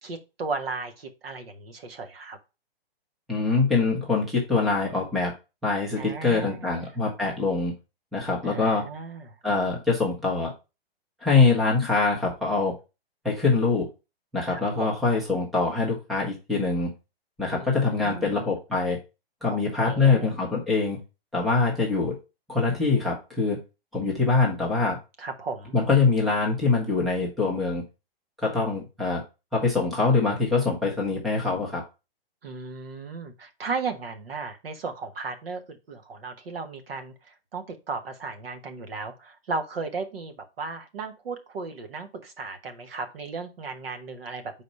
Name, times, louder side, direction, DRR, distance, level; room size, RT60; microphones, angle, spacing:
voice 1, 0.0-2.4 6.0-6.8 8.4-9.3 14.5-14.9 17.4-18.3 19.5-20.3 25.2-25.8 32.4-44.6, right 4 dB, 75° right, 7 dB, 1.5 m, -35 dB
voice 2, 3.3-5.3 5.6-7.7 8.1-8.9 9.4-10.5 11.2-12.7 13.2-13.9 14.3-16.9 17.4-19.0 19.4-21.0 21.3-22.2 22.5-23.6 23.9-25.0 25.7-27.8 28.4-29.2 29.5-31.8, left 4 dB, ahead, -2 dB, 0.6 m, -24 dB
5.0 x 4.1 x 5.4 m, 0.28 s
hypercardioid pair, 165°, 30 cm